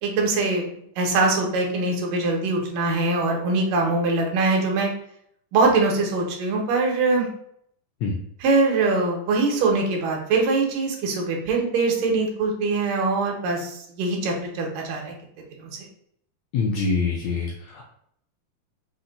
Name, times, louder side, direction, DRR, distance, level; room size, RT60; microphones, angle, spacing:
voice 1, 0.0-0.7 1.0-4.9 5.5-7.3 8.4-15.2 15.6-15.7, right 3 dB, 80° right, 1 dB, 2.5 m, -22 dB
voice 2, 16.5-17.9, left 4 dB, 85° left, -1 dB, 1.6 m, -25 dB
5.7 x 2.2 x 3.9 m, 0.69 s
omnidirectional pair, 3.7 m